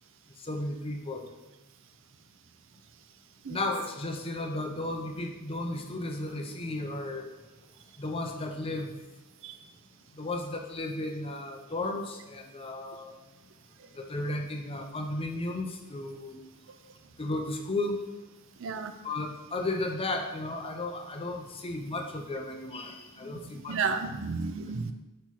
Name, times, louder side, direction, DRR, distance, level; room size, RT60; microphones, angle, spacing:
voice 1, 0.4-1.3 3.5-7.3 8.0-9.1 10.1-13.2 13.9-16.4 17.2-18.0 19.0-23.9, left 2 dB, 25° left, 4 dB, 0.5 m, -34 dB
voice 2, 18.6-18.9 23.7-24.9, right 5 dB, 60° right, 8 dB, 0.5 m, -32 dB
6.0 x 4.3 x 4.1 m, 1.1 s
head